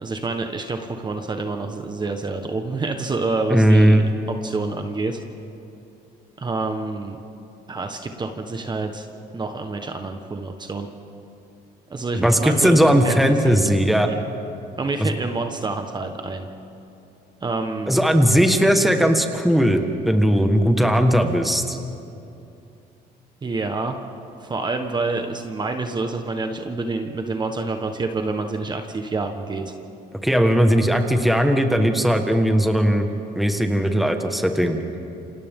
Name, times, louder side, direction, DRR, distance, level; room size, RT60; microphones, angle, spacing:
voice 1, 0.0-5.2 6.4-7.2 7.7-9.1 9.3-10.9 11.9-13.2 13.4-13.7 14.0-14.2 14.8-16.5 17.4-18.0 23.4-24.0 24.4-29.6, right 3 dB, 25° right, 5 dB, 1.3 m, -27 dB
voice 2, 3.5-4.1 12.1-14.1 15.0-15.1 17.9-21.8 30.2-33.1 33.3-34.8, equal, ahead, 4 dB, 1.6 m, -18 dB
28.5 x 26.5 x 3.8 m, 2.7 s
cardioid pair, 110°, 17 cm